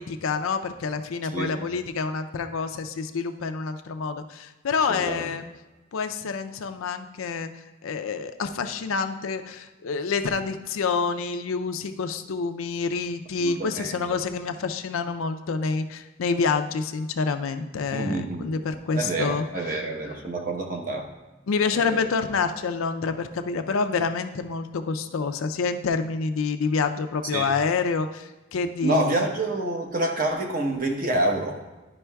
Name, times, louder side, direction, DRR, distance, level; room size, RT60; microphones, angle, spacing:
voice 1, 0.0-5.5 5.9-20.1 21.5-29.3, left 5 dB, 80° left, 8 dB, 0.5 m, -28 dB
voice 2, 4.9-5.3 13.4-14.0 17.9-18.5 18.9-21.1 21.7-22.0 27.3-27.5 28.8-31.6, right 2 dB, 40° right, 2 dB, 0.9 m, -27 dB
11.0 x 5.4 x 2.3 m, 1.1 s
head